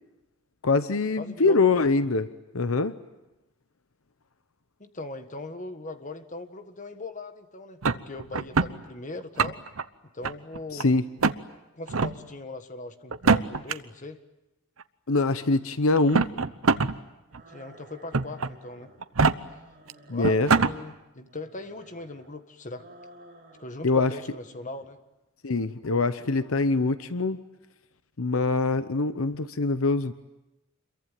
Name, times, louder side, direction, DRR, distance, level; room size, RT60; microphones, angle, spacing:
voice 1, 0.6-2.3 2.5-2.9 10.7-11.0 15.1-16.3 20.1-20.5 23.8-24.1 25.4-27.4 28.2-30.1, left 3 dB, 75° left, 12 dB, 0.9 m, -24 dB
voice 2, 1.2-1.6 4.8-9.6 10.1-10.9 11.7-14.2 17.5-18.9 20.1-22.9 23.6-25.0, left 2 dB, 35° left, 8 dB, 1.6 m, -39 dB
sound 1, 7.8-8.7 9.2-9.8 10.2-10.8 11.2-11.4 11.9-12.1 13.1-13.7 14.8-14.9 15.9-16.9 17.3-17.4 18.1-18.5 19.0-19.3 19.9-20.0 20.2-20.7, right 4 dB, 75° right, 0.9 m, -23 dB
sound 2, 17.3-19.0 19.4-20.9 21.2-22.3 22.7-23.9 24.2-24.9, right 1 dB, 35° right, 6.8 m, -53 dB
27.5 x 23.0 x 9.1 m, 0.96 s
head